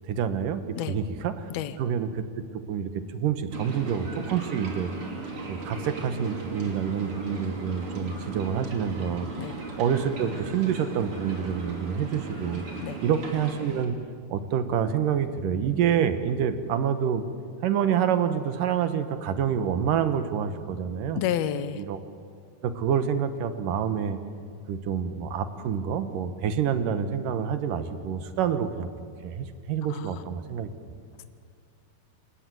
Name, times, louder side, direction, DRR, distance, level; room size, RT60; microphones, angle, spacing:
voice 1, 0.0-1.4 1.8-2.2 2.7-4.9 5.5-9.3 9.8-12.6 13.0-13.9 14.3-17.2 17.6-21.2 21.7-22.0 22.6-24.2 24.7-28.9 29.2-30.7, right 8 dB, 65° right, 9 dB, 2.7 m, -27 dB
sound 1, 3.5-13.9, right 4 dB, 35° right, 3.6 m, -37 dB
voice 2, 21.1-21.8 29.9-30.1, left 10 dB, 80° left, 11 dB, 1.5 m, -29 dB
28.0 x 27.0 x 7.8 m, 2.2 s
omnidirectional pair, 4.7 m